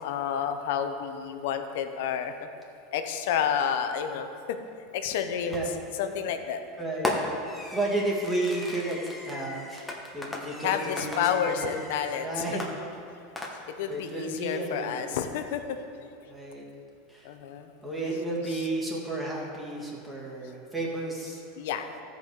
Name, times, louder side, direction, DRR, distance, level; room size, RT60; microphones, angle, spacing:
voice 1, 0.0-2.5 2.9-4.6 4.9-5.5 6.0-6.6 10.6-12.7 13.7-15.8 17.2-17.7 21.6-21.9, left 8 dB, 70° left, 7 dB, 0.7 m, -30 dB
Fireworks, 5.5-5.9 7.0-12.1 12.6-13.9, left 2 dB, 10° left, 1.2 m, -36 dB
voice 2, 6.8-9.0 9.2-11.7 12.2-12.6 13.9-15.0 16.3-16.6 17.1-17.3 17.8-21.4, right 2 dB, 10° right, -3 dB, 2.0 m, -32 dB
14.0 x 5.4 x 4.8 m, 2.6 s
supercardioid pair, 125°, 0 cm